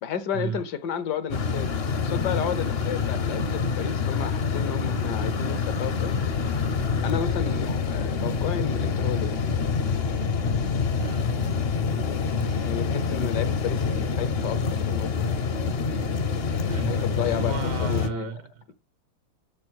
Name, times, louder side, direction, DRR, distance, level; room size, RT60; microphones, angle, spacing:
voice 1, 0.0-6.1 7.0-9.3 12.6-15.3 16.9-18.3, left 8 dB, 75° left, 1.3 m, -32 dB
sound 1, 1.3-18.1, left 5 dB, 55° left, 0.7 m, -26 dB
voice 2, 11.0-11.3 16.7-18.7, right 7 dB, 85° right, 1.5 m, -34 dB
6.4 x 6.3 x 6.3 m
omnidirectional pair, 1.8 m